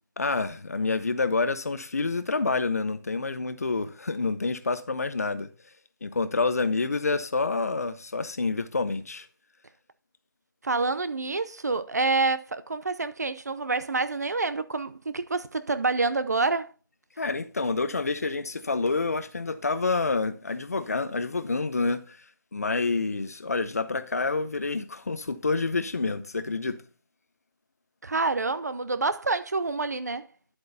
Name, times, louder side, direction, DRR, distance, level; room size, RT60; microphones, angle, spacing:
voice 1, 0.2-5.5 6.0-9.3 17.2-22.2 22.5-26.8, left 3 dB, 45° left, 0.7 m, -28 dB
voice 2, 10.6-16.7 28.0-30.3, right 3 dB, 50° right, 0.6 m, -27 dB
10.5 x 8.0 x 2.7 m
figure-of-eight pair, 175°, 12 cm